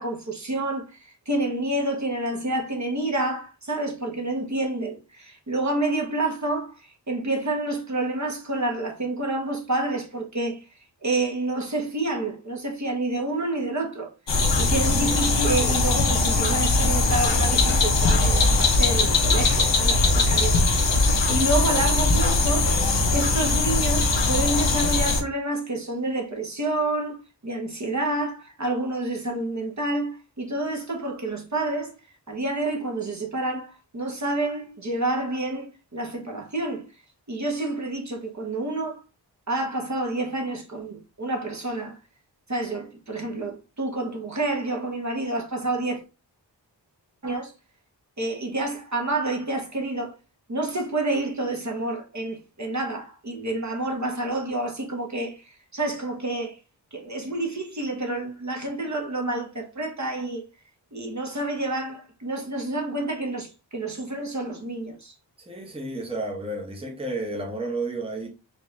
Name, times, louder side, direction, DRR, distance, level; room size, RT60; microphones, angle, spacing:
voice 1, 0.0-10.6 11.0-14.1 14.6-20.7 21.3-31.9 32.3-36.9 37.3-39.0 39.5-42.0 42.5-46.0 47.2-47.5 48.2-50.1 50.5-56.6 56.9-60.4 60.9-65.1, right 2 dB, 40° right, 1.3 m, -28 dB
sound 1, 14.3-25.2, left 3 dB, 85° left, 1.1 m, -21 dB
voice 2, 65.4-68.3, right 2 dB, 15° right, 1.0 m, -31 dB
4.5 x 2.8 x 3.3 m
wide cardioid pair, 90°, 43 cm